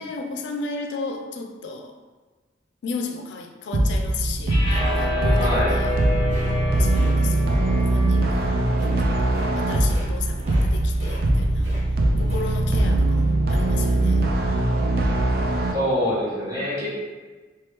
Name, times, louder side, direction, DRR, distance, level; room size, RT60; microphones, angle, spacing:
voice 1, 0.0-1.9 2.8-5.9 6.5-11.7 12.2-14.2, left 4 dB, 80° left, 3 dB, 0.3 m, -34 dB
sound 1, 3.7-15.7, right 1 dB, 55° right, 0.3 m, -21 dB
sound 2, 4.5-10.7, left 1 dB, 25° left, 0.6 m, -31 dB
sound 3, 4.8-6.0 6.3-6.5 6.9-7.1 8.7-9.0 9.3-9.5 9.8-10.1 10.4-10.7 10.9-11.8 12.1-12.5, equal, 40° right, 1.2 m, -41 dB
voice 2, 5.4-5.7 15.7-16.9, equal, 20° right, -10 dB, 1.2 m, -25 dB
3.3 x 2.3 x 3.0 m, 1.3 s
head